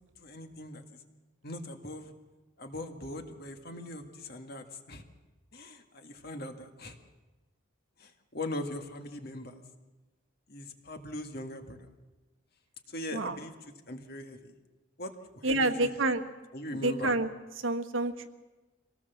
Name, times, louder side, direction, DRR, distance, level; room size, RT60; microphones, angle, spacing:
voice 1, 0.2-0.8 1.4-2.1 2.6-5.0 5.5-7.0 8.0-9.6 10.5-11.9 12.9-13.5 13.9-14.5 15.0-16.0 16.5-17.1, left 1 dB, 50° left, 5 dB, 2.0 m, -40 dB
voice 2, 15.4-16.2 16.8-17.3 17.6-18.3, right 2 dB, 80° right, 7 dB, 1.4 m, -28 dB
24.5 x 18.0 x 7.2 m, 1.2 s
head